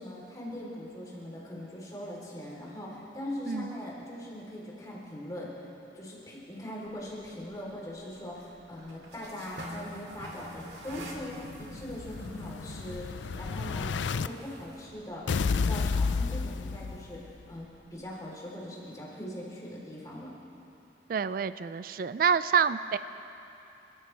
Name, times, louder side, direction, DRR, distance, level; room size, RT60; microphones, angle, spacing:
voice 1, 0.0-5.7 5.9-13.9 14.2-15.2 15.5-20.3, left 1 dB, 20° left, -5 dB, 3.5 m, -41 dB
sound 1, 6.9-18.1, equal, 70° right, 2.4 m, -49 dB
Explosion, 10.9-14.3 15.3-17.3, left 4 dB, 85° left, 0.5 m, -31 dB
voice 2, 21.1-23.0, right 7 dB, 50° right, 14 dB, 0.3 m, -27 dB
30.0 x 14.5 x 3.3 m, 2.9 s
head